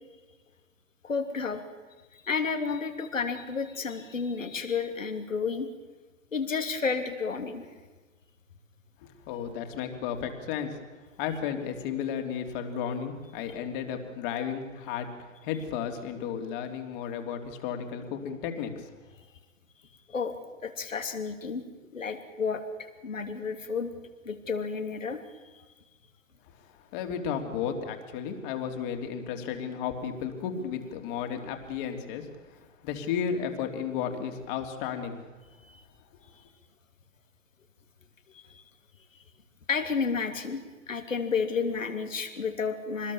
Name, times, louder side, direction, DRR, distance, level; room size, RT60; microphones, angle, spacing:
voice 1, 1.0-1.6 2.2-5.7 6.3-7.7 20.1-20.3 20.6-21.6 21.9-23.9 24.2-25.2 25.5-25.6 35.6-35.8 38.3-38.6 39.7-40.6 40.9-43.1, left 5 dB, 75° left, 6 dB, 2.9 m, -31 dB
voice 2, 9.3-10.8 11.2-15.1 15.4-18.9 26.9-35.2, left 7 dB, 40° left, 5 dB, 3.4 m, -33 dB
26.0 x 20.5 x 7.2 m, 1.3 s
figure-of-eight pair, 100°, 39 cm